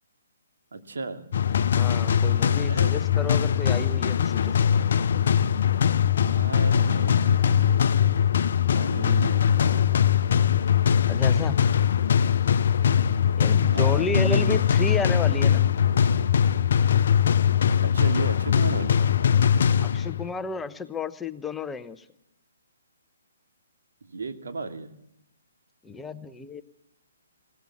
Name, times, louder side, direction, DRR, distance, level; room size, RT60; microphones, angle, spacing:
voice 1, 0.7-1.3 2.5-2.9 6.2-8.2 8.7-10.2 13.7-14.6 17.8-19.0 24.0-24.9, right 4 dB, 65° right, 4 dB, 2.5 m, -35 dB
sound 1, 1.3-20.3, left 8 dB, 55° left, 0.8 m, -21 dB
voice 2, 1.6-4.5 11.1-11.6 13.4-15.7 19.8-22.0 25.8-26.6, left 3 dB, 10° left, 10 dB, 0.9 m, -32 dB
20.5 x 17.5 x 7.4 m, 0.84 s
figure-of-eight pair, 135°, 0 cm